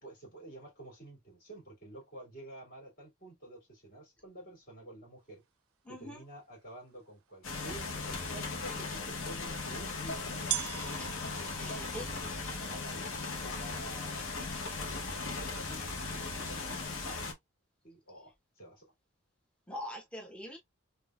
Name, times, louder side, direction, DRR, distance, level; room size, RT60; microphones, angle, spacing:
voice 1, 0.0-5.4 5.9-10.4 11.5-14.7 15.0-17.3 17.8-18.9, right 1 dB, 45° left, 2.4 m, -50 dB
voice 2, 5.8-6.2 11.0-12.1 19.7-20.6, left 1 dB, 5° left, 0.8 m, -44 dB
sound 1, 6.6-6.7 7.4-7.5 9.2-9.3 10.5-16.1, right 14 dB, 80° right, 0.4 m, -43 dB
sound 2, 7.4-17.3, left 3 dB, 70° left, 1.0 m, -38 dB
3.8 x 2.7 x 2.3 m
head